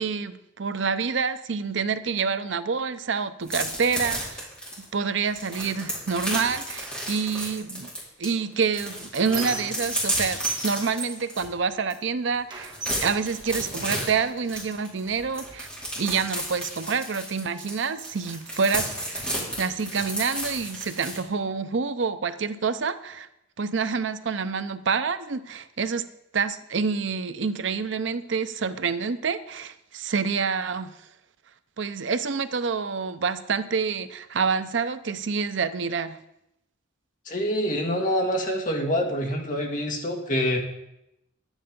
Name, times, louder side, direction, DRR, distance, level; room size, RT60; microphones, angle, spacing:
voice 1, 0.0-4.5 4.8-7.9 8.2-15.7 16.0-19.3 19.6-23.3 23.6-26.1 26.3-30.9 31.8-36.2, right 5 dB, 70° right, 12 dB, 0.6 m, -27 dB
sound 1, 3.4-8.3 8.6-11.4 11.9-12.0 12.3-21.2, equal, 5° left, 4.1 m, -32 dB
Squeak, 8.4-10.1 10.4-12.1 12.5-14.2 15.0-15.1 15.4-16.4, right 4 dB, 25° right, 1.5 m, -37 dB
voice 2, 37.3-40.6, equal, 40° left, 1 dB, 1.9 m, -26 dB
11.0 x 9.1 x 5.3 m, 0.85 s
head